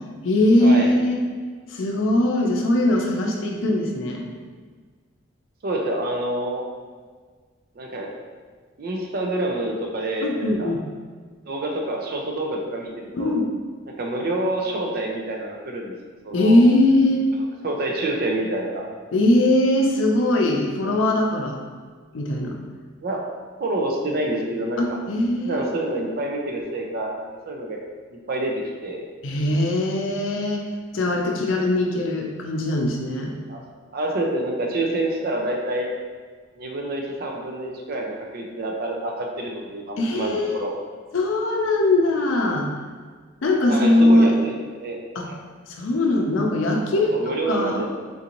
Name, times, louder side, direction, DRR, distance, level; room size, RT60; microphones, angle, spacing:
voice 1, 0.2-1.2 1.7-4.3 10.2-10.8 13.1-13.5 16.3-17.3 19.1-21.6 22.1-22.6 24.8-25.7 29.2-30.7 30.9-33.3 40.0-40.6 41.1-42.7 43.4-44.3 45.2-45.3 45.7-47.8, left 1 dB, 75° left, 1 dB, 0.5 m, -20 dB
voice 2, 5.6-6.6 7.8-8.1 8.8-10.7 11.5-13.3 13.9-16.0 16.2-16.6 17.6-18.8 23.0-23.3 23.6-25.0 25.4-27.8 28.1-29.0 33.5-33.6 33.9-35.9 36.6-40.7 43.7-45.0 45.2-45.4 46.9-47.9, right 1 dB, 50° right, 0 dB, 0.4 m, -27 dB
3.8 x 2.5 x 2.9 m, 1.5 s
head